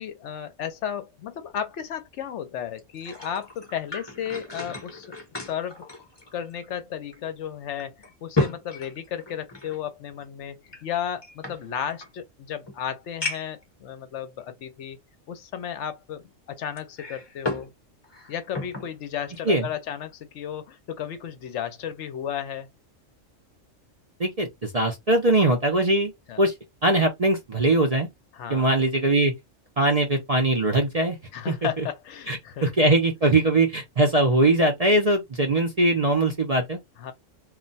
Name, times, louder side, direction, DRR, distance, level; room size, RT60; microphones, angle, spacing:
voice 1, 0.0-5.1 5.4-5.8 6.3-15.0 15.3-17.7 18.3-22.7 26.3-26.4 28.3-28.7 31.3-32.7 37.0-37.1, left 9 dB, 70° left, 0.9 m, -34 dB
sound 1, 2.8-6.8 7.1-7.2 7.8-9.8 10.7-12.1 12.7-12.8 13.2-13.6 14.4-14.5 16.8-17.7 18.0-18.9 19.3-19.5, left 2 dB, 25° left, 0.8 m, -33 dB
voice 2, 24.2-26.1 26.4-26.5 26.8-28.1 28.5-29.3 29.8-31.2 31.5-31.9 32.3-36.8, right 2 dB, 40° right, 0.5 m, -21 dB
2.4 x 2.1 x 3.9 m
omnidirectional pair, 1.3 m